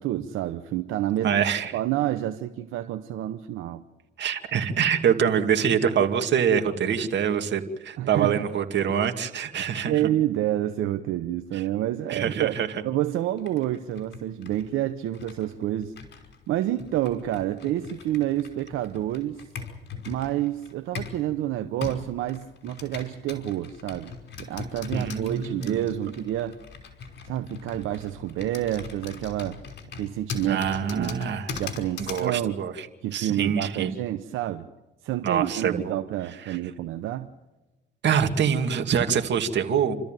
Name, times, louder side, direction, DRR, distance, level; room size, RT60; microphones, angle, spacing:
voice 1, 0.0-1.4 1.7-3.8 8.0-8.5 9.9-12.6 12.8-15.9 16.5-19.4 20.1-26.6 27.3-29.6 30.0-31.2 31.6-32.6 33.0-34.7 35.0-37.3, right 13 dB, 90° right, 9 dB, 0.9 m, -28 dB
voice 2, 1.2-1.7 4.2-9.9 11.5-11.6 12.1-12.7 24.9-25.8 30.5-31.5 32.0-32.7 33.1-33.9 35.2-36.0 36.5-36.6 38.0-39.9, right 8 dB, 65° right, 6 dB, 2.4 m, -25 dB
Computer keyboard, 13.4-21.2 21.8-32.3, left 5 dB, 60° left, 5.3 m, -40 dB
29.0 x 13.5 x 9.1 m, 1.1 s
cardioid pair, 90°, 20 cm